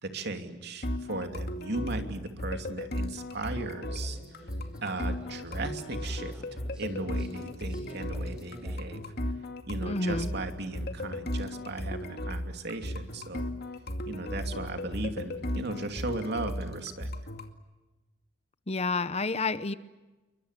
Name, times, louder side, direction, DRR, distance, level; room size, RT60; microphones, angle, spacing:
voice 1, 0.0-4.2 4.8-6.4 6.8-9.0 9.7-13.5 14.0-17.1, right 2 dB, 60° right, 6 dB, 2.8 m, -36 dB
sound 1, 0.8-17.5, left 1 dB, 55° left, 2.3 m, -36 dB
sound 2, 3.9-9.0, equal, 5° right, 6.7 m, -50 dB
voice 2, 9.9-10.3 18.7-19.7, left 3 dB, 35° left, 14 dB, 0.9 m, -29 dB
29.0 x 23.5 x 8.3 m, 1.2 s
head